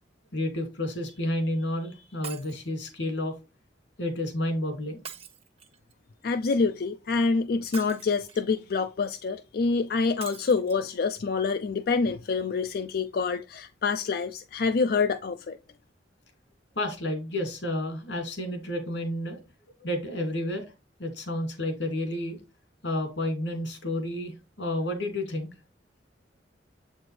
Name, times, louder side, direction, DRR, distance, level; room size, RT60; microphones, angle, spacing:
voice 1, 0.3-3.3 4.0-5.0 16.8-19.4 19.8-20.7 21.0-22.4 22.8-25.5, left 1 dB, 90° left, 2.4 m, -30 dB
Shatter, 2.2-2.7 5.0-5.9 7.7-8.5 10.2-10.8 11.4-11.5 11.8-11.9, right 7 dB, 35° right, 1.0 m, -43 dB
voice 2, 6.2-15.6, left 4 dB, 55° left, 0.4 m, -26 dB
7.7 x 4.3 x 3.2 m
head